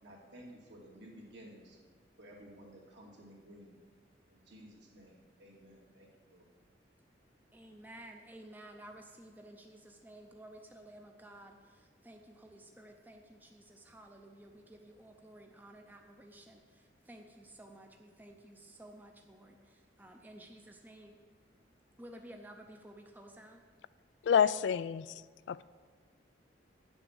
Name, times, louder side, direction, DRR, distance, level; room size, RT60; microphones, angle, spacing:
voice 1, 0.0-1.8 2.2-3.8 4.3-6.5, equal, 70° right, -2 dB, 2.5 m, -54 dB
voice 2, 7.5-21.2 22.0-23.6, right 1 dB, 10° right, 3 dB, 0.6 m, -53 dB
voice 3, 24.2-25.2 25.5-25.6, left 7 dB, 70° left, 17 dB, 0.3 m, -28 dB
9.3 x 7.1 x 7.0 m, 1.5 s
head